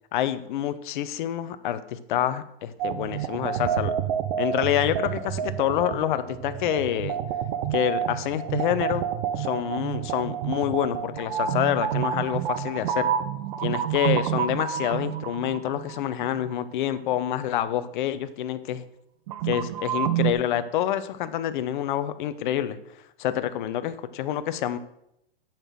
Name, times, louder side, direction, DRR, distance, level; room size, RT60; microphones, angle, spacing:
voice 1, 0.1-3.9 4.4-7.2 7.7-9.1 9.4-13.1 13.6-18.8 19.4-22.8 23.2-24.8, left 11 dB, 50° left, 12 dB, 0.8 m, -27 dB
sound 1, 2.8-16.5 19.3-20.3, right 9 dB, 40° right, 0.8 m, -29 dB
9.0 x 5.9 x 6.3 m, 0.80 s
hypercardioid pair, 135°, 32 cm